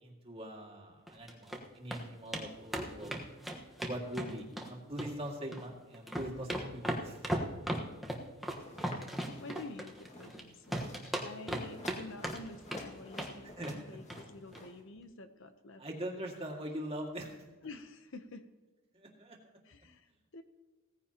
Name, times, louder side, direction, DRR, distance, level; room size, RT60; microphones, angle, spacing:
voice 1, 0.0-3.2 3.8-7.2 13.4-14.0 15.8-17.4 18.9-19.4, right 1 dB, 25° right, -1 dB, 2.1 m, -42 dB
sound 1, 1.1-1.6 1.9-2.0 2.3-2.5 2.7-4.7 5.0-5.7 5.9-10.4 10.7-12.0 12.2-12.8 13.1-13.4 13.6-13.8 14.1-14.2 14.5-14.6, right 1 dB, ahead, 1.2 m, -37 dB
sound 2, 8.6-9.0 9.3-9.6 9.9-10.3 10.6-11.0 11.6-14.7, left 1 dB, 30° left, 1.9 m, -51 dB
voice 2, 9.4-15.8 17.6-18.5 19.6-20.4, left 3 dB, 55° left, 9 dB, 0.8 m, -49 dB
17.5 x 15.0 x 2.9 m, 1.2 s
head